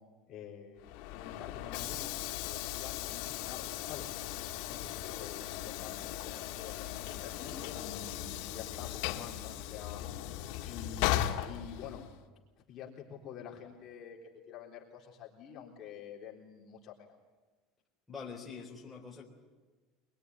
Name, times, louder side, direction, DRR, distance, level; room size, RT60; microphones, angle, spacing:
voice 1, 0.3-4.4 4.6-10.0 10.6-11.2 11.5-12.0 12.7-14.2 14.5-17.1, left 7 dB, 35° left, -2 dB, 3.7 m, -48 dB
Train / Sliding door, 0.8-12.2, left 14 dB, 65° left, 1.8 m, -37 dB
voice 2, 18.1-19.2, left 5 dB, 5° left, -4 dB, 4.0 m, -44 dB
24.0 x 22.0 x 9.7 m, 1.3 s
cardioid pair, 165°, 0 cm